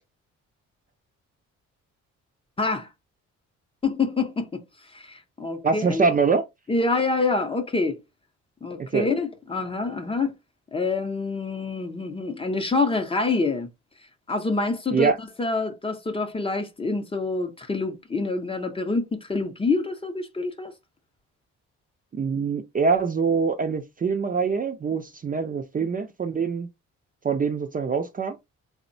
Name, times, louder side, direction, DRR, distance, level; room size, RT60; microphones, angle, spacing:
voice 1, 2.6-2.9 3.8-4.6 4.9-6.1 6.7-8.0 8.6-10.3 10.7-13.7 14.3-20.7, left 3 dB, 20° left, 0.6 m, -26 dB
voice 2, 5.6-6.5 8.9-9.1 14.9-15.2 22.1-26.7 27.2-28.4, right 5 dB, 30° right, 0.4 m, -24 dB
3.5 x 2.1 x 2.5 m
cardioid pair, 90°, 30 cm